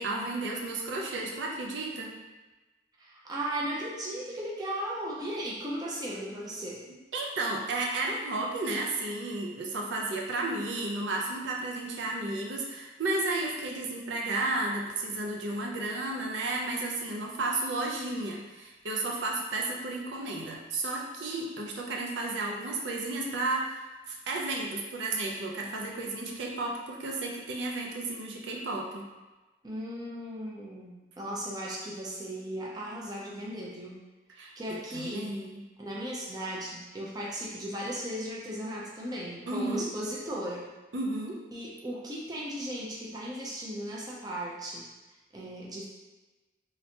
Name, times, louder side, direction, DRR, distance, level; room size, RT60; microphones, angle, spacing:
voice 1, 0.0-2.1 7.1-23.7 24.1-29.1 34.3-35.6 39.5-39.9 40.9-41.4, right 2 dB, 75° right, -1 dB, 0.5 m, -33 dB
voice 2, 3.0-6.8 29.6-34.0 34.6-35.3 35.8-40.7 41.5-44.9 45.3-45.9, right 1 dB, 20° right, -5 dB, 0.5 m, -36 dB
3.2 x 2.9 x 2.8 m, 1.2 s
head